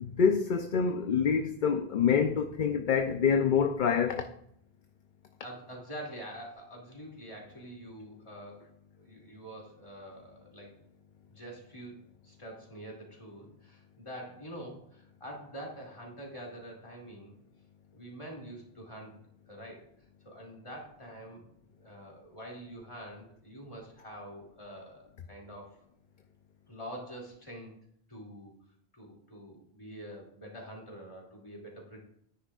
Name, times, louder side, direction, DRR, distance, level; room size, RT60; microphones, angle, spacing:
voice 1, 0.0-4.2, left 6 dB, 55° left, 0.7 m, -26 dB
voice 2, 5.4-10.7 11.3-12.0 12.2-17.4 17.9-19.2 19.5-19.9 20.2-21.5 21.8-25.8 26.7-27.8 28.1-28.5 28.9-32.0, right 1 dB, 30° left, 2.7 m, -46 dB
12.0 x 9.8 x 2.4 m
omnidirectional pair, 1.1 m